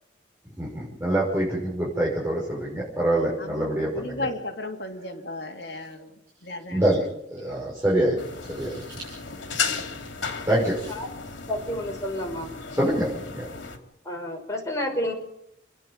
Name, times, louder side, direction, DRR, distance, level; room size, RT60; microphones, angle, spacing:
voice 1, 0.6-4.3 6.7-7.0 7.3-8.2 8.5-9.2 10.5-10.9 12.7-13.5, right 1 dB, 15° right, -6 dB, 6.1 m, -25 dB
voice 2, 3.4-6.1 6.4-7.1 7.4-7.6 9.6-9.9, left 2 dB, 60° left, 4 dB, 2.7 m, -35 dB
sound 1, 8.2-13.8, left 5 dB, 85° left, 3.1 m, -34 dB
voice 3, 11.5-12.5 14.1-15.1, left 1 dB, 15° left, 0 dB, 5.7 m, -30 dB
30.0 x 10.5 x 9.0 m, 0.76 s
head